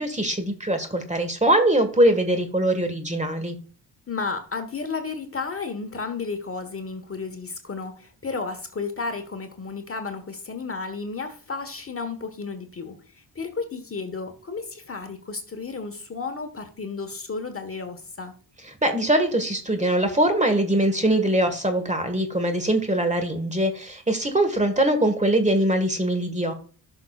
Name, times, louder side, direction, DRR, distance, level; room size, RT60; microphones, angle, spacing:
voice 1, 0.0-3.5 18.8-26.5, right 1 dB, 15° right, 8 dB, 1.5 m, -22 dB
voice 2, 4.1-18.3, left 4 dB, 30° left, 7 dB, 1.3 m, -33 dB
11.0 x 6.0 x 2.4 m, 0.41 s
supercardioid pair, 60°, 44 cm